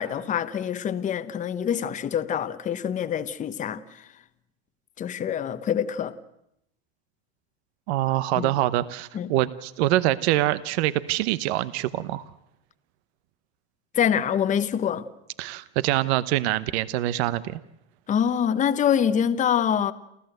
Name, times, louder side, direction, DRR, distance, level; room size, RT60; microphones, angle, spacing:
voice 1, 0.0-4.1 5.0-6.1 8.4-8.5 9.1-9.3 13.9-15.0 18.1-19.9, left 8 dB, 20° left, 0.8 m, -25 dB
voice 2, 7.9-12.2 15.4-17.6, right 15 dB, 70° right, 1.0 m, -25 dB
29.0 x 14.0 x 7.9 m
supercardioid pair, 135°, 34 cm